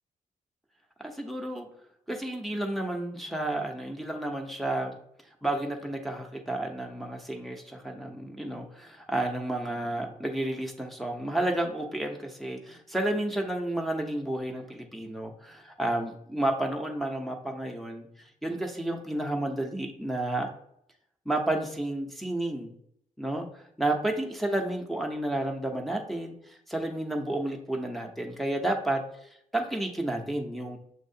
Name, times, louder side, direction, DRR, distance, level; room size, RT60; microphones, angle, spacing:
voice 1, 1.0-1.7 2.1-4.9 5.4-18.1 18.4-20.5 21.3-22.7 23.2-29.0 29.5-30.8, right 1 dB, ahead, 1 dB, 0.8 m, -31 dB
6.5 x 2.9 x 2.7 m, 0.70 s
cardioid pair, 90°, 14 cm